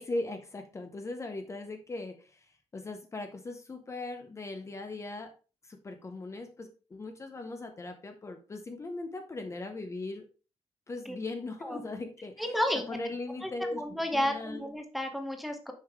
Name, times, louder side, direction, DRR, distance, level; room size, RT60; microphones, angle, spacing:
voice 1, 0.0-5.3 5.6-10.3 10.9-13.8 14.1-14.7, left 2 dB, 25° left, 6 dB, 0.7 m, -39 dB
voice 2, 12.4-12.8 13.4-15.7, left 1 dB, ahead, 4 dB, 0.9 m, -32 dB
6.5 x 5.4 x 3.5 m, 0.34 s
wide cardioid pair, 165°, 11 cm